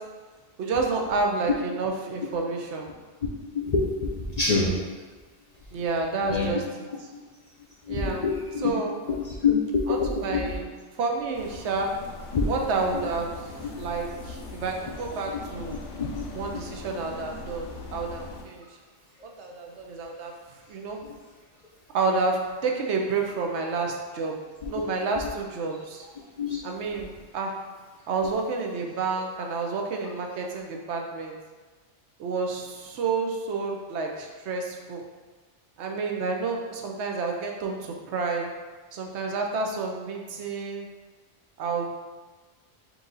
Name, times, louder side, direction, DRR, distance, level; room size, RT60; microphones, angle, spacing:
voice 1, 0.6-2.9 5.7-7.1 7.9-8.2 8.6-9.0 9.9-10.7 11.0-11.9 12.4-15.8 16.3-18.6 19.2-20.3 20.7-21.0 21.9-24.4 24.7-26.1 26.6-27.5 28.1-31.4 32.2-35.0 35.8-38.5 38.9-40.9 41.6-41.9, right 4 dB, 75° right, 2 dB, 0.9 m, -29 dB
voice 2, 3.5-4.7 6.3-6.5 7.9-8.7 9.1-10.5 12.3-12.5 15.7-16.3 21.0-21.1 24.6-24.7 26.4-26.6, left 4 dB, 50° left, -4 dB, 0.5 m, -26 dB
sound 1, 11.3-18.4, left 3 dB, 70° left, 0.8 m, -40 dB
4.4 x 2.6 x 3.8 m, 1.3 s
omnidirectional pair, 1.2 m